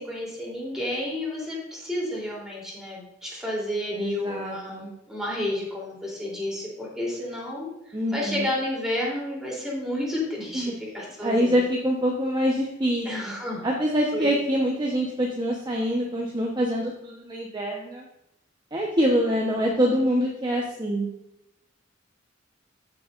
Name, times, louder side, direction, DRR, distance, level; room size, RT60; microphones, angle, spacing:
voice 1, 0.0-11.5 13.0-13.7 14.1-14.3, left 1 dB, 5° right, -5 dB, 3.5 m, -31 dB
voice 2, 4.0-4.9 7.9-8.5 10.5-10.7 11.2-13.1 13.6-18.0 18.7-21.1, equal, 25° right, -2 dB, 1.1 m, -25 dB
14.5 x 6.8 x 2.6 m, 0.84 s
head